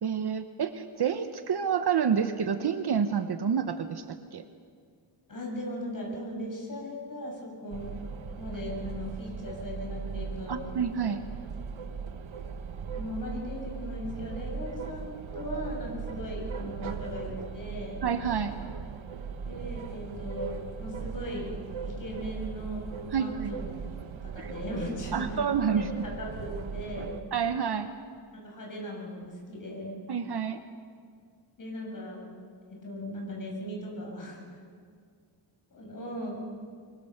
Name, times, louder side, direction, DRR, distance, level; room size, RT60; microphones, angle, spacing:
voice 1, 0.0-4.4 10.5-11.2 18.0-18.6 23.1-23.5 24.4-24.5 25.1-26.0 27.3-28.0 30.1-30.6, right 7 dB, 55° right, 8 dB, 1.0 m, -28 dB
voice 2, 5.3-8.0 8.4-10.7 12.9-18.0 19.5-21.5 21.8-23.6 24.2-25.4 25.7-27.2 28.4-30.0 31.6-32.2 32.8-34.6 35.7-36.5, equal, 45° left, -2 dB, 6.9 m, -38 dB
sound 1, 7.7-27.2, right 6 dB, 80° right, 1.4 m, -38 dB
25.5 x 22.5 x 6.7 m, 2.1 s
wide cardioid pair, 135°, 47 cm